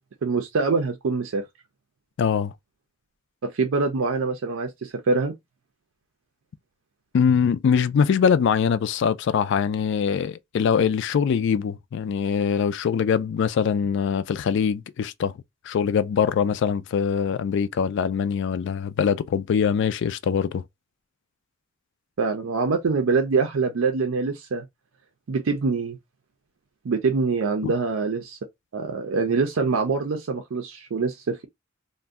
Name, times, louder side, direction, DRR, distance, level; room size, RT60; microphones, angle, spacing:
voice 1, 0.2-1.4 3.4-5.3 22.2-24.6 25.3-26.0 26.8-28.4 28.7-31.4, right 4 dB, 85° right, 0.5 m, -24 dB
voice 2, 2.2-2.5 7.1-15.3 15.7-20.6 27.6-27.7, left 7 dB, 60° left, 0.3 m, -23 dB
2.5 x 2.1 x 3.5 m
head